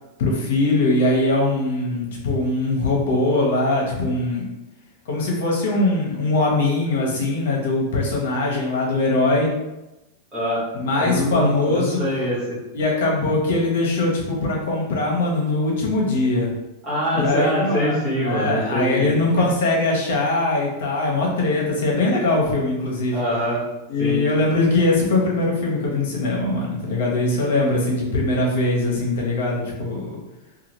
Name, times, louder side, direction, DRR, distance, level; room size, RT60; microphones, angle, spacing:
voice 1, 0.2-4.4 5.0-9.5 10.7-12.0 12.7-16.5 17.1-23.2 23.9-30.2, left 2 dB, 65° left, -2 dB, 0.9 m, -21 dB
voice 2, 10.3-10.6 11.0-12.6 16.8-19.2 23.1-23.6 24.0-24.2, equal, 10° right, -9 dB, 0.9 m, -24 dB
2.8 x 2.3 x 3.0 m, 0.98 s
supercardioid pair, 180°, 0 cm